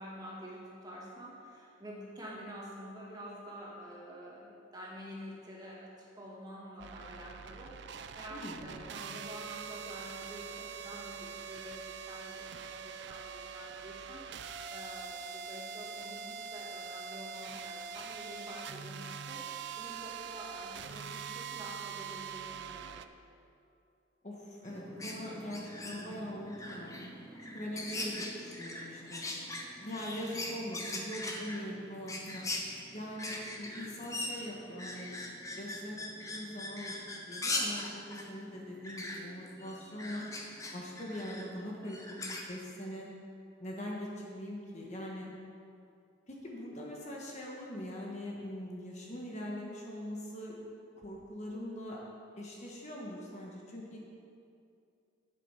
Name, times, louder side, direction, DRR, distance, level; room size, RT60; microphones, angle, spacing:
voice 1, 0.0-23.0, equal, 20° right, -5 dB, 2.0 m, -48 dB
sound 1, 6.8-23.1, right 6 dB, 55° right, 0.4 m, -43 dB
voice 2, 8.3-8.7 24.2-27.1 27.4-29.2 29.8-32.5 32.9-40.3 40.7-43.1 43.6-45.3 46.3-50.6 51.0-52.0 52.4-54.0, left 1 dB, 35° left, -2 dB, 1.3 m, -42 dB
sound 2, 24.6-42.4, left 2 dB, 15° left, 0.9 m, -41 dB
11.0 x 8.0 x 5.7 m, 2.5 s
head